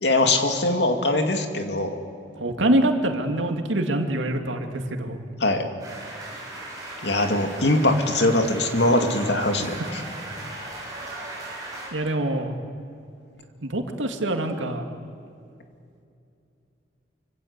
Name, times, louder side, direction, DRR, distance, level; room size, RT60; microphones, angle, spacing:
voice 1, 0.0-2.0 5.4-5.7 7.0-10.0, left 2 dB, 65° left, 5 dB, 2.5 m, -22 dB
voice 2, 2.4-5.2 9.6-9.9 11.9-12.6 13.6-14.8, right 1 dB, 85° right, 4 dB, 2.4 m, -25 dB
sound 1, 5.8-11.9, right 2 dB, 20° right, 7.6 m, -37 dB
25.5 x 25.5 x 8.2 m, 2.5 s
head